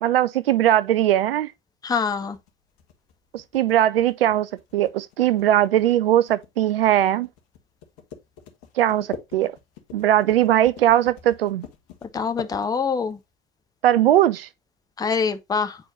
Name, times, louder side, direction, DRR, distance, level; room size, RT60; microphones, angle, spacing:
voice 1, 0.0-1.5 3.3-7.3 8.8-9.1 9.3-9.5 9.9-11.6 13.8-14.5, right 12 dB, 75° right, 0.4 m, -19 dB
voice 2, 1.8-2.4 12.1-13.2 15.0-15.8, left 5 dB, 15° left, 0.6 m, -24 dB
sound 1, 2.2-13.2, left 7 dB, 50° left, 1.3 m, -43 dB
8.4 x 4.4 x 2.7 m
figure-of-eight pair, 75°, 29 cm